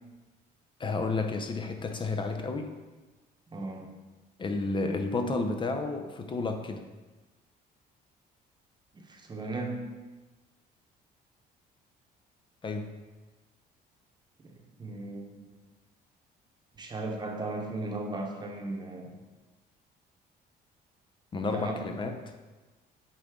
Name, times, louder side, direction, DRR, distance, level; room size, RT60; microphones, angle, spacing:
voice 1, 0.8-2.7 4.4-6.8 12.6-13.0 21.3-22.3, left 3 dB, 30° left, 5 dB, 0.6 m, -31 dB
voice 2, 3.5-4.0 8.9-9.9 14.4-14.5 14.8-15.5 16.7-19.2 21.5-21.9, right 2 dB, 25° right, 2 dB, 1.0 m, -36 dB
8.4 x 3.7 x 3.6 m, 1.2 s
cardioid pair, 110°, 17 cm